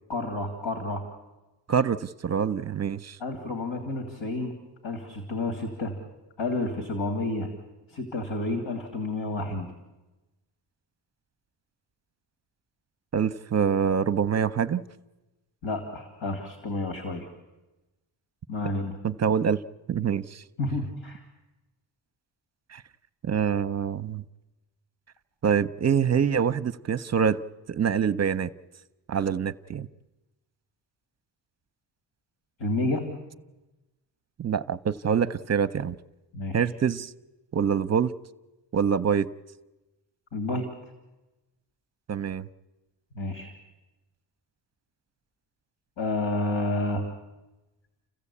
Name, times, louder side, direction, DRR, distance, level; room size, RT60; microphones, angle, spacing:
voice 1, 0.1-1.1 3.2-4.6 4.8-6.0 6.4-7.5 7.9-9.7 15.6-17.3 18.5-19.0 20.6-21.2 32.6-33.1 36.3-36.6 40.3-40.7 43.1-43.5 46.0-47.0, left 2 dB, 85° left, 2.9 m, -30 dB
voice 2, 1.7-3.2 13.1-14.8 19.0-19.6 19.9-20.4 22.7-22.8 23.2-24.2 25.4-27.4 27.7-28.5 29.1-29.9 34.4-36.0 36.5-37.1 37.5-38.1 38.7-39.3 42.1-42.5, right 7 dB, 35° right, 0.7 m, -25 dB
29.0 x 15.0 x 8.5 m
cardioid pair, 80°, 46 cm